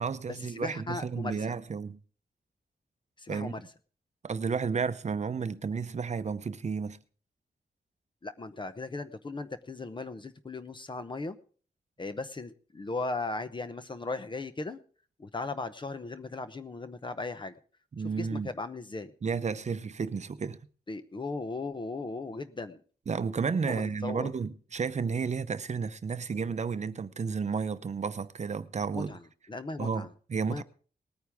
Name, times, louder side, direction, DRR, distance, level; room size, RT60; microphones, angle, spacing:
voice 1, 0.0-2.0 3.3-3.5 4.2-7.0 18.0-18.5 19.2-20.6 23.1-29.2 29.8-30.6, right 5 dB, 45° right, 0.7 m, -32 dB
voice 2, 0.6-1.4 3.2-3.6 8.2-11.4 12.0-14.8 15.2-17.6 18.0-19.1 20.9-22.8 23.7-24.3 28.9-29.2 29.5-30.1 30.4-30.6, left 3 dB, 30° left, 0.7 m, -37 dB
19.5 x 9.3 x 3.5 m
wide cardioid pair, 145°, 16 cm